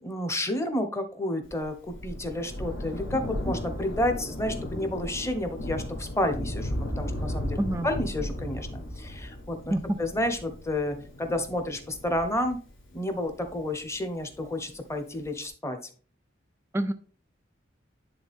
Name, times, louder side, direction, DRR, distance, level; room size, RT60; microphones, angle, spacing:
voice 1, 0.0-7.6 7.8-9.7 10.0-12.6 12.9-15.8, left 1 dB, 15° left, 7 dB, 0.9 m, -30 dB
Thunder, 1.4-14.3 15.2-15.3, left 1 dB, 70° left, 1.8 m, -35 dB
voice 2, 7.6-7.9 9.7-10.0 16.7-16.9, right 1 dB, 15° right, 10 dB, 0.4 m, -27 dB
10.0 x 3.6 x 3.5 m, 0.39 s
head